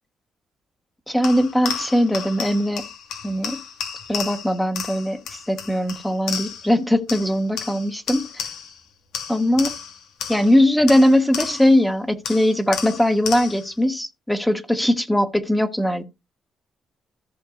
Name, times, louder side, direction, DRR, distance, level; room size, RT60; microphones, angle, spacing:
voice 1, 1.1-2.8 3.2-3.6 4.1-8.3 9.3-9.7 10.3-16.0, left 1 dB, 5° left, 1.4 m, -20 dB
sound 1, 1.2-6.8 7.1-8.8 9.1-11.8 12.3-13.7, left 7 dB, 85° left, 2.3 m, -33 dB
14.5 x 6.3 x 2.6 m
cardioid pair, 90°, 0 cm